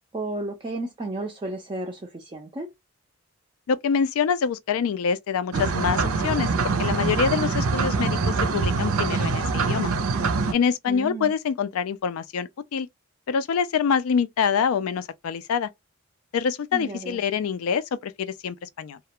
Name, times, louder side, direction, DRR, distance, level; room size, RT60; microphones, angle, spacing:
voice 1, 0.1-2.7 10.9-11.3 16.7-17.2, right 2 dB, 25° right, 0.4 m, -33 dB
voice 2, 3.7-9.9 10.5-12.9 13.3-15.7 16.3-19.0, left 6 dB, 80° left, 0.3 m, -25 dB
sound 1, 5.5-10.5, right 4 dB, 80° right, 0.5 m, -24 dB
2.3 x 2.1 x 2.8 m
head